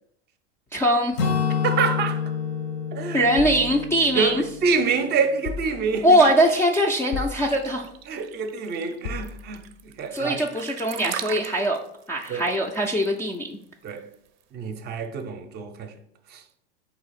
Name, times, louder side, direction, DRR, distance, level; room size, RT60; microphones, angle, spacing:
voice 1, 0.7-1.2 3.1-4.4 6.0-7.9 10.1-11.8 12.1-13.6, right 1 dB, 10° left, 0.3 m, -21 dB
Acoustic guitar / Strum, 1.2-5.1, left 6 dB, 85° left, 0.9 m, -28 dB
voice 2, 1.6-2.2 2.9-3.3 4.2-6.2 8.1-9.6 10.0-10.4 12.3-12.5 13.8-14.1 14.5-15.9 16.3-16.4, right 5 dB, 35° right, 0.6 m, -26 dB
sound 1, 3.4-4.8 5.4-6.3 7.1-8.0 9.0-9.9, left 4 dB, 65° left, 0.6 m, -37 dB
sound 2, 6.7-14.4, right 11 dB, 75° right, 0.5 m, -39 dB
4.1 x 2.8 x 4.0 m
hypercardioid pair, 105°, 30 cm